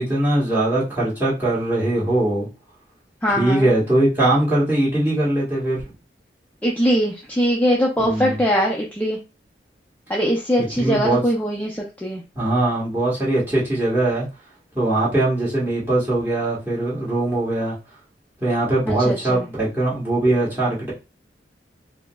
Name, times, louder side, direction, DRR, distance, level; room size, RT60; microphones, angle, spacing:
voice 1, 0.0-2.5 3.4-5.9 8.0-8.4 10.8-11.2 12.3-14.3 14.7-17.7 18.4-20.9, right 1 dB, 10° right, 1.4 m, -21 dB
voice 2, 3.2-3.7 6.6-9.2 10.1-12.2 18.9-19.5, equal, 10° left, 0.5 m, -21 dB
4.8 x 2.0 x 2.2 m
head